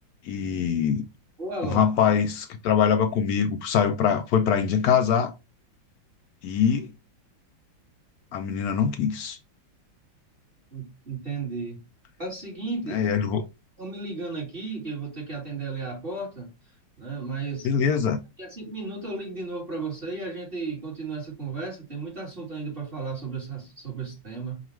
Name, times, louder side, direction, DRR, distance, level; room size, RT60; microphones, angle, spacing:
voice 1, 0.2-1.0 1.6-5.3 6.4-6.9 8.3-9.4 12.9-13.4 17.6-18.2, left 7 dB, 80° left, 0.8 m, -23 dB
voice 2, 1.4-1.8 10.7-11.8 12.2-13.0 13.8-16.5 17.0-17.7 18.4-24.6, right 3 dB, 30° right, 1.6 m, -34 dB
5.2 x 2.4 x 3.0 m
omnidirectional pair, 2.2 m